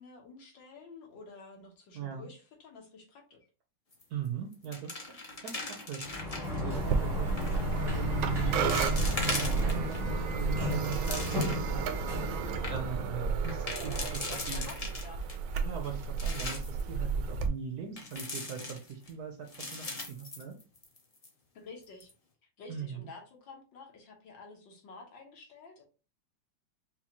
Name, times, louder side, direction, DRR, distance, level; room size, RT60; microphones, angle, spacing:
voice 1, 0.0-3.4 13.7-15.2 21.5-22.1 22.6-25.8, left 3 dB, 70° left, 0 dB, 1.8 m, -50 dB
voice 2, 1.9-2.3 4.1-5.1 5.4-6.0 6.6-7.3 7.7-11.8 12.7-14.7 15.6-20.6 22.7-23.1, right 8 dB, 65° right, 4 dB, 1.0 m, -39 dB
sound 1, 3.9-4.3 4.5-6.6 7.3-7.6 8.2-8.3 8.7-10.0 10.5-11.8 12.2-12.3 12.5-12.7 13.4-15.4 15.8-16.8 18.0-19.1 19.5-21.0 21.2-21.3 21.8-22.1, left 2 dB, 40° left, 0.5 m, -39 dB
Sliding door, 6.0-13.2, left 2 dB, 15° right, 0.8 m, -35 dB
sound 2, 6.7-17.5, right 5 dB, 85° right, 1.4 m, -33 dB
5.5 x 2.4 x 2.9 m, 0.33 s
omnidirectional pair, 2.2 m